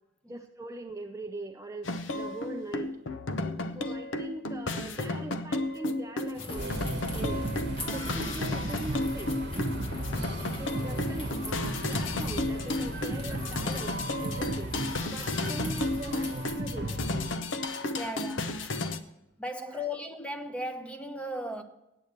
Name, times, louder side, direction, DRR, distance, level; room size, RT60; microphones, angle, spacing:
voice 1, 0.3-3.0 3.7-6.8 7.1-7.5 7.9-9.3 10.6-14.7 15.1-17.0 18.4-18.7 19.6-19.9, right 1 dB, 15° right, 0.5 m, -41 dB
sound 1, 1.8-19.0, left 2 dB, 70° left, 0.8 m, -33 dB
sound 2, 6.3-16.6, left 1 dB, 30° left, 1.5 m, -42 dB
sound 3, 6.6-17.4, right 2 dB, 60° right, 1.0 m, -36 dB
voice 2, 7.8-8.1 9.9-10.3 18.0-18.6 19.4-21.6, left 1 dB, 5° left, 1.0 m, -37 dB
9.0 x 8.2 x 7.3 m
head